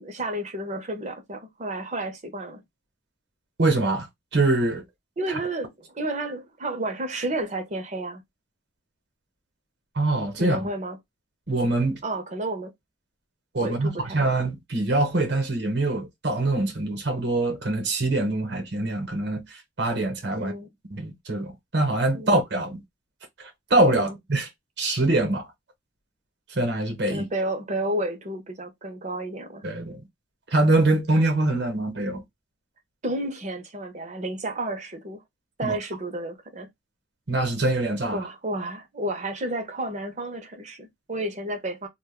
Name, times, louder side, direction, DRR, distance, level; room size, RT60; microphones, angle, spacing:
voice 1, 0.0-2.6 5.2-8.2 10.4-11.0 12.0-12.7 13.6-14.4 20.4-20.7 22.1-22.3 23.9-24.1 27.1-29.6 33.0-35.2 35.6-36.7 38.1-41.9, right 1 dB, 45° right, 0.8 m, -31 dB
voice 2, 3.6-4.1 4.3-4.8 5.3-5.4 9.9-10.7 11.5-12.0 13.5-20.5 20.9-22.8 23.4-24.5 24.8-25.5 26.5-27.2 29.6-30.0 30.5-32.2 35.6-35.8 37.3-38.2, right 2 dB, 70° right, 1.0 m, -24 dB
2.5 x 2.3 x 3.5 m
head